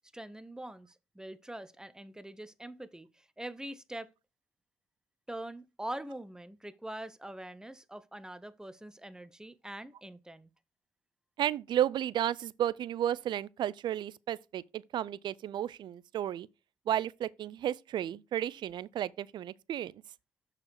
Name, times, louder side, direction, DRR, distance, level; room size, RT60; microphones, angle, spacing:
voice 1, 0.1-4.1 5.3-10.5, right 1 dB, 10° right, 0.7 m, -43 dB
voice 2, 11.4-16.5 16.9-20.0, right 11 dB, 65° right, 0.4 m, -33 dB
6.4 x 4.9 x 4.5 m
supercardioid pair, 65°, 8 cm